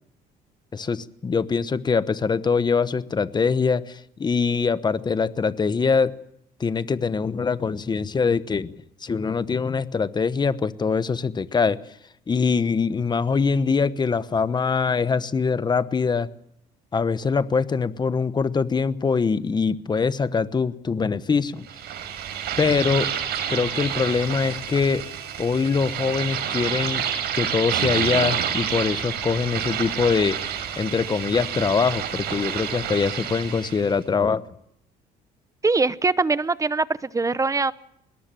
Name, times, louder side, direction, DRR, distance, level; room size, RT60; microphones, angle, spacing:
voice 1, 0.7-6.1 6.6-8.7 9.0-11.8 12.3-16.3 16.9-21.7 22.6-23.1 23.5-25.1 25.4-27.1 27.3-30.4 30.8-34.4, left 5 dB, 25° left, 14 dB, 1.0 m, -23 dB
sound 1, 21.7-33.9, right 9 dB, 75° right, 5.7 m, -29 dB
voice 2, 35.6-37.7, right 3 dB, 20° right, 17 dB, 0.8 m, -22 dB
21.0 x 18.5 x 7.6 m, 0.74 s
cardioid pair, 110°, 17 cm